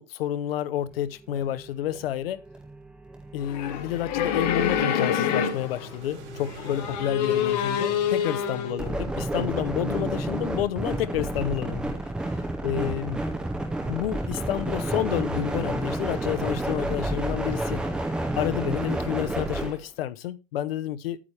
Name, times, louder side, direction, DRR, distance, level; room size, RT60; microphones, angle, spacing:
voice 1, 0.0-2.4 3.3-11.9 12.3-13.2 13.9-17.8 18.4-21.2, left 11 dB, 55° left, 0.8 m, -30 dB
sound 1, 0.9-19.8, right 1 dB, 5° right, 0.6 m, -32 dB
sound 2, 3.4-5.9 6.5-8.7, left 8 dB, 35° left, 1.2 m, -26 dB
sound 3, 5.2-10.2, right 2 dB, 80° right, 3.0 m, -45 dB
8.6 x 8.5 x 3.2 m
supercardioid pair, 175°, 35 cm